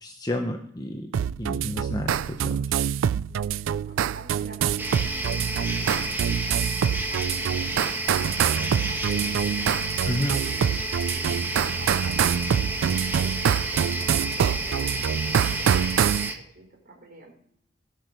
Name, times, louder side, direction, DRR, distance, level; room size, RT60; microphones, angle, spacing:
voice 1, 0.0-1.1 1.4-2.6 10.1-10.4, left 1 dB, 20° left, 4 dB, 0.8 m, -30 dB
sound 1, 1.1-16.3, right 8 dB, 80° right, 0.3 m, -25 dB
voice 2, 3.3-17.3, right 2 dB, 50° right, 0 dB, 4.2 m, -48 dB
sound 2, 4.8-16.3, right 1 dB, 10° right, 1.3 m, -31 dB
18.0 x 6.3 x 5.2 m, 0.71 s
head